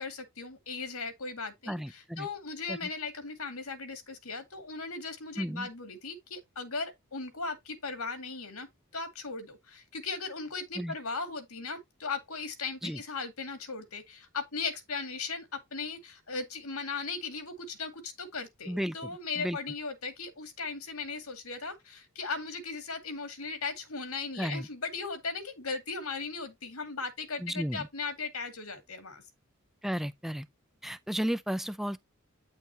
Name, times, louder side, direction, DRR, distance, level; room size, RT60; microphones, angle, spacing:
voice 1, 0.0-8.7 8.9-29.2, left 4 dB, 85° left, 2.2 m, -37 dB
voice 2, 1.7-2.3 2.7-2.9 5.4-5.7 10.8-10.9 12.8-13.0 18.7-19.6 24.4-24.7 27.4-27.9 29.8-30.5 30.8-32.0, equal, ahead, 0.5 m, -34 dB
9.5 x 6.5 x 2.8 m
head